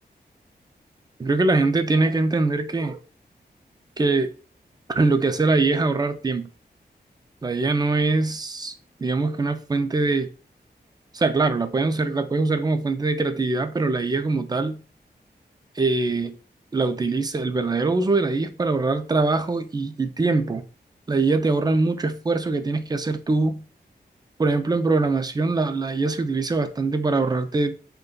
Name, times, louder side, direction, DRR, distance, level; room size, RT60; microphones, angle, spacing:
voice 1, 1.2-3.0 4.0-4.3 4.9-6.5 7.4-8.7 9.0-10.3 11.1-14.8 15.8-16.4 16.7-20.6 21.1-23.6 24.4-27.8, right 3 dB, 25° right, 0.3 m, -23 dB
5.1 x 2.2 x 2.3 m
wide cardioid pair, 145°, 17 cm